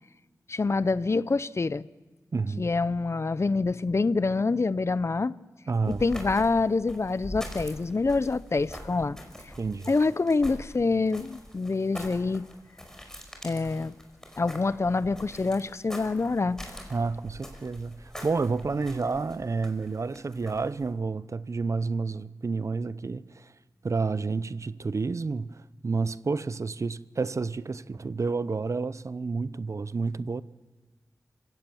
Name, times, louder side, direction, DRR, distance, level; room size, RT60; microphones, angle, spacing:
voice 1, 0.5-1.8 2.6-5.3 5.9-9.2 9.9-12.5 13.4-13.9 14.4-16.6, left 3 dB, 45° left, 0.7 m, -26 dB
voice 2, 2.3-2.7 5.7-6.0 9.6-9.9 16.9-23.5 23.8-30.4, right 4 dB, 55° right, 0.7 m, -30 dB
sound 1, 5.8-20.9, equal, 10° left, 5.1 m, -44 dB
26.0 x 17.0 x 7.1 m
cardioid pair, 55°, 6 cm